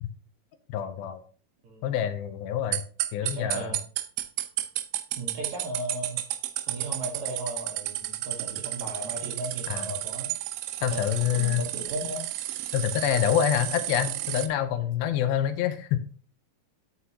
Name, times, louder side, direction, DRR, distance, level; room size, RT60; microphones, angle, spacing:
voice 1, 0.7-1.2 1.8-2.8 3.1-3.8 9.7-9.9 10.8-11.6 12.7-16.0, left 10 dB, 80° left, 10 dB, 2.5 m, -26 dB
sound 1, 2.7-14.5, right 14 dB, 80° right, 2.0 m, -32 dB
voice 2, 3.2-3.8 5.2-6.2 6.7-10.3 10.9-12.3, right 2 dB, 65° right, 0 dB, 2.0 m, -36 dB
9.5 x 5.9 x 2.8 m, 0.42 s
omnidirectional pair, 4.4 m